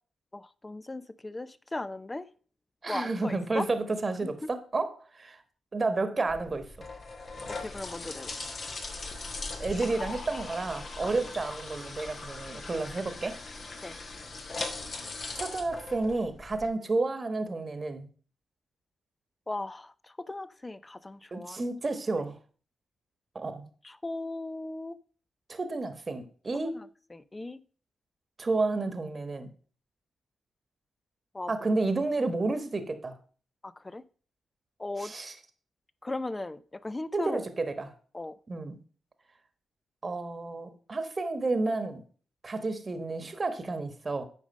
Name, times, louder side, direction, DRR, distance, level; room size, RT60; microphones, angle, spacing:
voice 1, 0.3-2.3 2.9-3.7 4.2-4.3 7.6-8.3 11.1-11.2 13.8-14.0 19.5-21.6 23.8-25.0 26.5-27.6 31.3-31.5 33.6-34.0 34.8-35.1 36.0-37.4 38.1-38.3, left 2 dB, 25° left, 0.6 m, -37 dB
voice 2, 2.8-4.9 5.2-5.4 5.7-6.6 9.6-13.4 15.4-18.1 21.3-22.3 23.3-23.6 25.5-26.7 28.4-29.5 31.5-33.1 35.0-35.3 37.1-37.9 38.5-38.8 40.0-42.0 42.4-44.2, right 3 dB, 40° right, 1.3 m, -31 dB
sound 1, 6.3-16.7, left 3 dB, 55° left, 1.6 m, -40 dB
8.4 x 5.2 x 5.4 m
supercardioid pair, 50°, 0 cm